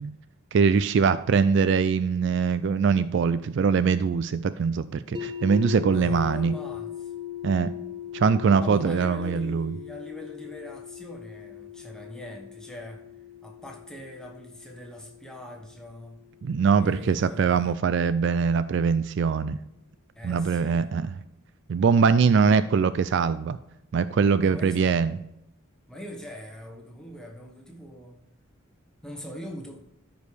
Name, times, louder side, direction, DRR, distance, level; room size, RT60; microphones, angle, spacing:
voice 1, 0.5-6.5 7.4-7.7 8.1-9.7 16.4-19.6 20.2-21.1 21.7-23.6 23.9-25.1, right 5 dB, 55° right, 14 dB, 0.3 m, -22 dB
sound 1, 5.1-17.1, left 11 dB, 20° right, 0.7 m, -40 dB
voice 2, 5.9-7.1 8.6-16.2 16.8-17.8 20.1-20.9 24.4-25.0 25.9-28.2 29.0-29.9, left 1 dB, 5° left, 1 dB, 1.2 m, -42 dB
13.5 x 5.2 x 3.3 m, 0.83 s
head